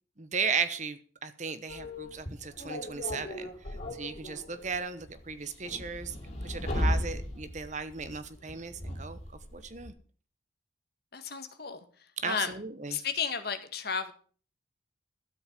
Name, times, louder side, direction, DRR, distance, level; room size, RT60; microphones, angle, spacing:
voice 1, 0.2-6.2 6.4-9.2 9.5-9.9 12.2-13.0, right 5 dB, 35° right, 1.1 m, -36 dB
sound 1, 1.7-9.9, left 1 dB, 35° left, 5.4 m, -36 dB
voice 2, 11.1-11.8 12.2-12.6 12.9-14.1, left 6 dB, 50° left, 1.7 m, -33 dB
13.0 x 8.0 x 7.4 m
head